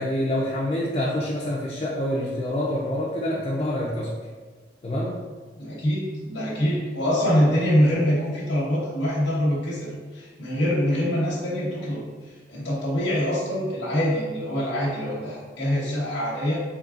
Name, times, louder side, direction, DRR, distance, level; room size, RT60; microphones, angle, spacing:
voice 1, 0.0-4.1 4.8-5.2, left 1 dB, 30° left, -5 dB, 0.4 m, -26 dB
voice 2, 5.6-12.0 12.5-16.6, equal, 85° left, -6 dB, 0.9 m, -24 dB
3.8 x 3.2 x 2.4 m, 1.4 s
head